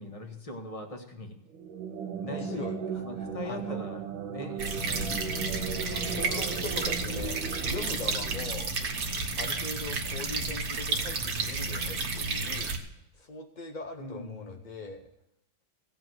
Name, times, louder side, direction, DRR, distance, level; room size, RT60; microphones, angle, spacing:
voice 1, 0.0-1.6 2.2-4.0 4.3-5.4 5.9-6.4 14.0-14.5, left 1 dB, 20° left, 4 dB, 1.2 m, -41 dB
sound 1, 1.5-9.0, right 7 dB, 80° right, 1.7 m, -37 dB
voice 2, 2.3-3.8 6.2-7.4 7.6-8.7 9.4-12.7 13.1-15.1, left 3 dB, 50° left, 3 dB, 0.5 m, -41 dB
sound 2, 4.6-12.8, right 3 dB, 50° right, 1.6 m, -31 dB
16.0 x 5.5 x 7.8 m, 0.84 s
omnidirectional pair, 2.2 m